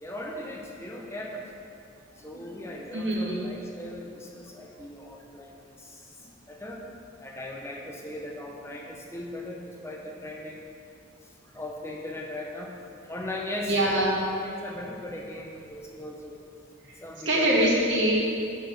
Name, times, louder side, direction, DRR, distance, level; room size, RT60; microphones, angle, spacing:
voice 1, 0.0-1.4 2.2-6.2 6.5-6.8 7.2-10.6 11.4-12.7 13.0-13.8 14.4-16.4 17.0-17.7 18.2-18.3, left 1 dB, 15° left, 0 dB, 0.6 m, -38 dB
voice 2, 2.9-3.4 13.6-14.1 16.9-17.0 17.3-18.3, right 1 dB, 60° right, -5 dB, 2.0 m, -24 dB
6.5 x 6.5 x 6.4 m, 2.6 s
head